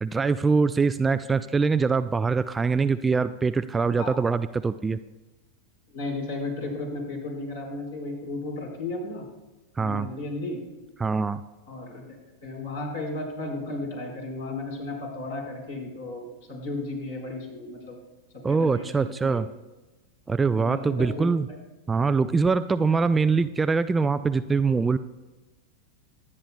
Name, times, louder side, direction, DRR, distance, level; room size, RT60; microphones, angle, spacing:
voice 1, 0.0-5.0 9.8-10.1 11.0-11.4 18.4-19.5 20.3-21.5 21.9-25.0, right 4 dB, 15° right, 12 dB, 0.3 m, -23 dB
voice 2, 5.9-9.2 9.8-10.6 11.7-12.0 12.4-18.0 18.3-19.4 20.5-21.2, left 2 dB, 60° left, 0 dB, 4.4 m, -34 dB
23.5 x 9.8 x 2.2 m, 1.1 s
figure-of-eight pair, 90°, 0 cm